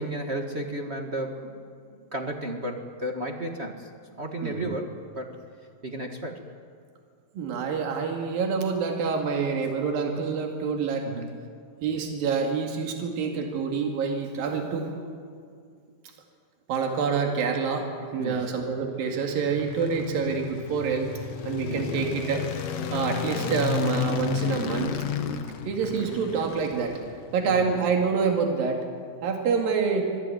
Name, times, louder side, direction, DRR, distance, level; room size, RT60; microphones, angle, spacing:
voice 1, 0.0-1.5 2.1-3.9 4.2-5.3 5.8-6.4 11.0-11.4 18.2-18.5 21.7-22.1 27.4-27.7, right 1 dB, 35° right, 3 dB, 1.0 m, -33 dB
voice 2, 4.4-4.7 7.4-11.1 11.8-14.9 16.7-21.1 21.4-22.5 22.9-24.9 25.7-27.0 27.3-28.8 29.2-30.1, right 5 dB, 80° right, 2 dB, 3.9 m, -27 dB
sound 1, 19.0-27.4, left 8 dB, 55° left, 2.0 m, -32 dB
26.0 x 18.5 x 9.6 m, 2.2 s
omnidirectional pair, 4.0 m